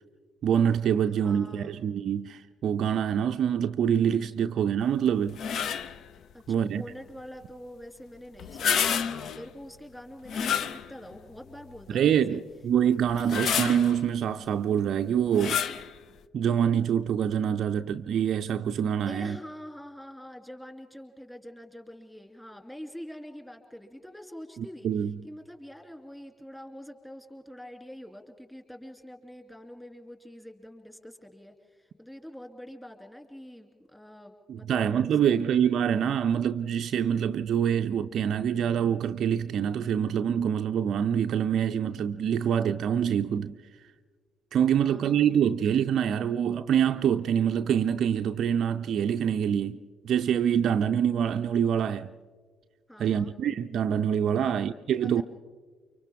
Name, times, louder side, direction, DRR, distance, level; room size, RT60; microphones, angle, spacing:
voice 1, 0.4-5.4 6.5-6.8 11.9-15.6 16.3-19.4 24.6-25.1 34.5-43.6 44.5-52.1 53.0-55.2, right 8 dB, 50° right, 0.5 m, -25 dB
voice 2, 1.2-1.8 6.3-12.4 19.0-24.9 25.2-35.3 44.8-45.3 52.9-53.3 54.4-54.7 55.0-55.2, equal, 10° left, 2.8 m, -45 dB
sound 1, 5.3-6.0 8.4-9.5 10.3-11.2 11.7-11.8 13.1-14.0 15.3-15.9, left 7 dB, 50° left, 0.6 m, -29 dB
29.5 x 24.5 x 3.6 m
figure-of-eight pair, 45°, 0 cm